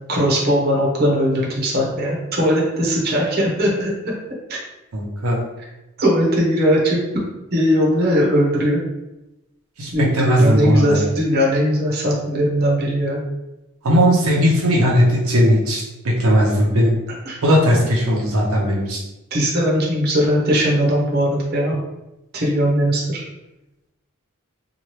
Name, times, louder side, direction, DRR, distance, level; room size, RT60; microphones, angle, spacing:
voice 1, 0.1-3.9 6.0-7.0 7.5-8.8 9.9-13.2 17.3-17.4 19.3-21.8 22.3-23.2, equal, 45° right, -3 dB, 0.8 m, -19 dB
voice 2, 4.9-5.4 9.8-11.0 13.8-16.9 17.4-19.0, equal, 80° right, -3 dB, 0.6 m, -17 dB
2.9 x 2.3 x 3.1 m, 0.96 s
head